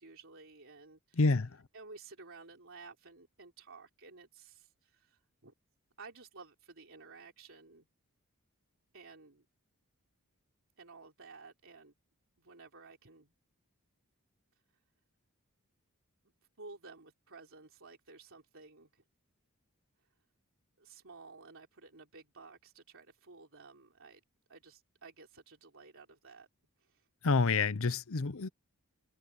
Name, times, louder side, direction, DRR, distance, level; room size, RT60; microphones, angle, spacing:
voice 1, 0.0-1.5 1.7-5.5 6.0-7.9 8.9-9.5 10.8-11.9 12.4-13.3 16.6-19.0 20.0-20.1 20.8-24.2 24.5-26.5 26.8-27.1, right 4 dB, 60° right, 3.7 m, -54 dB
voice 2, 1.2-1.5 27.2-28.5, left 4 dB, 65° left, 0.8 m, -28 dB
head